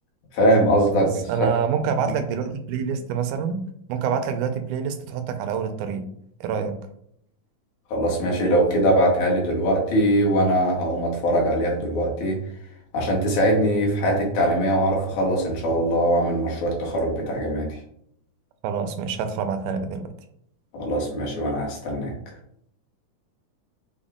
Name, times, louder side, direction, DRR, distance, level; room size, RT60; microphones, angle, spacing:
voice 1, 0.3-1.1 7.9-12.4 12.9-17.7 20.7-22.1, equal, 70° left, -2 dB, 2.5 m, -21 dB
voice 2, 1.0-3.6 3.9-6.1 6.4-6.8 18.6-20.1, right 7 dB, 85° right, 7 dB, 2.1 m, -26 dB
6.1 x 2.1 x 3.5 m, 0.69 s
omnidirectional pair, 3.5 m